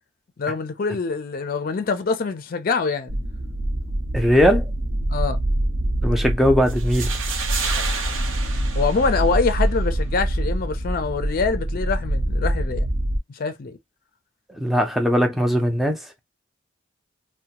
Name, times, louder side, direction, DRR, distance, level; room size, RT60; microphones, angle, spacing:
voice 1, 0.4-3.1 5.1-5.4 8.7-12.8 13.3-13.8, left 4 dB, 45° left, 0.4 m, -24 dB
sound 1, 3.1-13.2, right 1 dB, 50° right, 0.7 m, -25 dB
voice 2, 4.1-4.7 6.0-7.2 14.5-16.2, equal, ahead, 0.5 m, -20 dB
sound 2, 6.7-9.7, right 5 dB, 85° right, 0.8 m, -31 dB
2.7 x 2.1 x 2.8 m
head